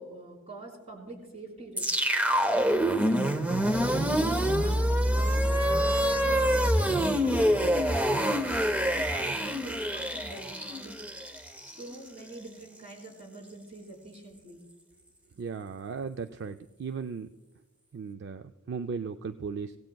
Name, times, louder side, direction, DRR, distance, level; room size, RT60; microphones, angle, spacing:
voice 1, 0.0-1.9 2.5-5.4 5.8-11.0 11.6-14.6, right 3 dB, 30° right, -1 dB, 4.2 m, -45 dB
sound 1, 1.8-12.0, equal, 5° right, 0.6 m, -26 dB
voice 2, 15.4-17.3 17.9-19.8, right 5 dB, 55° right, 9 dB, 0.4 m, -36 dB
24.5 x 17.0 x 2.3 m, 1.2 s
head